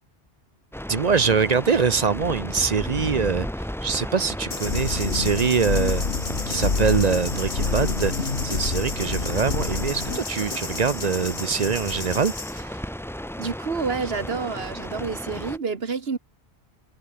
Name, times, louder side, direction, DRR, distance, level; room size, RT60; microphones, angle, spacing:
sound 1, 0.7-15.6, equal, 5° left, 0.7 m, -34 dB
voice 1, 0.9-6.0 6.5-12.8, right 5 dB, 45° right, 0.7 m, -24 dB
sound 2, 4.5-12.6, left 4 dB, 60° left, 2.2 m, -35 dB
sound 3, 4.6-10.2, left 4 dB, 80° left, 2.2 m, -27 dB
voice 2, 13.4-16.2, right 5 dB, 70° right, 1.8 m, -28 dB
omnidirectional pair, 1.1 m